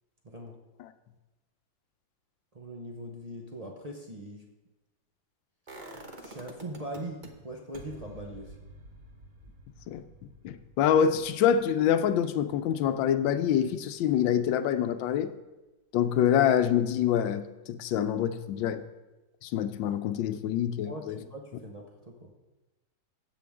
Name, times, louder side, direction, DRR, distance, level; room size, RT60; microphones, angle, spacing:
voice 1, 0.2-0.6 2.5-4.5 5.9-8.6 20.8-22.3, right 1 dB, 75° right, 0.3 m, -41 dB
sound 1, 5.7-7.3 7.7-13.6 13.9-14.0, right 2 dB, 30° right, 0.9 m, -49 dB
voice 2, 10.4-15.3 15.9-18.8 19.4-21.1, left 9 dB, 80° left, 1.3 m, -26 dB
15.5 x 7.6 x 3.5 m
omnidirectional pair, 2.1 m